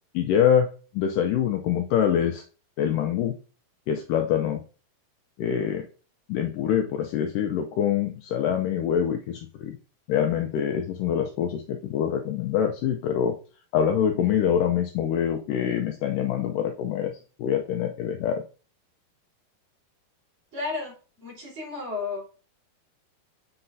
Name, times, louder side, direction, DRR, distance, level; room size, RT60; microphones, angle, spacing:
voice 1, 0.1-2.4 2.8-3.3 3.9-4.6 5.4-5.9 6.3-9.8 10.1-13.3 13.7-17.1 17.4-18.4, left 9 dB, 85° left, 4 dB, 1.8 m, -25 dB
voice 2, 20.5-20.9 21.2-22.3, left 4 dB, 30° right, -5 dB, 4.3 m, -32 dB
7.7 x 5.9 x 2.7 m, 0.36 s
omnidirectional pair, 4.6 m